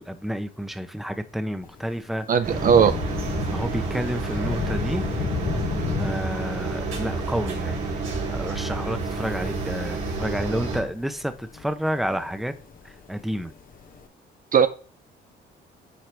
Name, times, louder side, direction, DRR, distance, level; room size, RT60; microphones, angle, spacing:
voice 1, 0.0-2.4 2.8-2.9 3.5-5.0 6.0-12.5 12.8-13.5, equal, ahead, 0.8 m, -30 dB
Thunder / Rain, 1.6-14.0, left 6 dB, 45° left, 0.9 m, -35 dB
voice 2, 2.3-2.9 14.5-14.7, right 7 dB, 45° right, 0.5 m, -17 dB
sound 1, 2.4-10.8, right 3 dB, 90° right, 2.9 m, -29 dB
10.5 x 4.6 x 3.4 m
cardioid pair, 90°, 20 cm